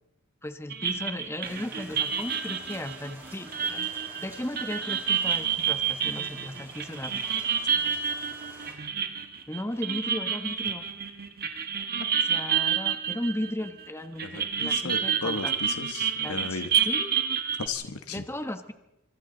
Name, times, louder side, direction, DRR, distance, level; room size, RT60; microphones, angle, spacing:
voice 1, 0.4-3.9 4.2-7.2 9.5-10.9 12.3-15.5 16.2-17.2 18.1-18.7, left 1 dB, 10° left, 8 dB, 1.2 m, -36 dB
sound 1, 0.7-13.8 14.2-17.7, right 7 dB, 45° right, 1.7 m, -29 dB
Rain, 1.4-8.7, right 1 dB, 10° right, 7.6 m, -49 dB
voice 2, 14.2-16.7 17.6-18.2, left 4 dB, 80° left, 8 dB, 1.3 m, -35 dB
25.5 x 25.5 x 4.0 m, 0.91 s
head